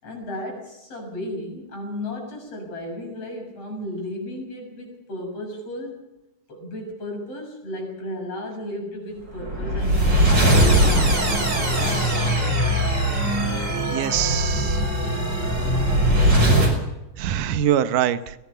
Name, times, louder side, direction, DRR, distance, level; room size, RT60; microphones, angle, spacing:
voice 1, 0.0-6.0 6.5-11.3, left 1 dB, 45° left, 1 dB, 7.9 m, -34 dB
sound 1, 9.3-16.8, right 1 dB, 30° right, 6.3 m, -20 dB
voice 2, 13.9-14.8 17.2-18.4, right 10 dB, 75° right, 13 dB, 2.5 m, -23 dB
21.5 x 18.5 x 6.8 m, 0.95 s
omnidirectional pair, 3.8 m